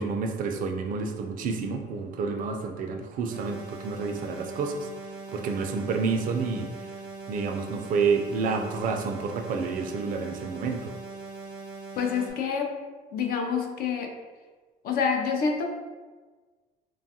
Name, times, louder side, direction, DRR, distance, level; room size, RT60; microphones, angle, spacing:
voice 1, 0.0-4.9 5.3-6.7 7.3-10.9, right 4 dB, 55° right, 4 dB, 0.4 m, -29 dB
sound 1, 3.3-12.3, right 3 dB, 90° right, 0.6 m, -41 dB
voice 2, 12.0-12.7 13.1-14.1 14.8-15.6, left 6 dB, 60° left, 2 dB, 0.5 m, -27 dB
3.1 x 2.3 x 2.7 m, 1.4 s
cardioid pair, 110°, 17 cm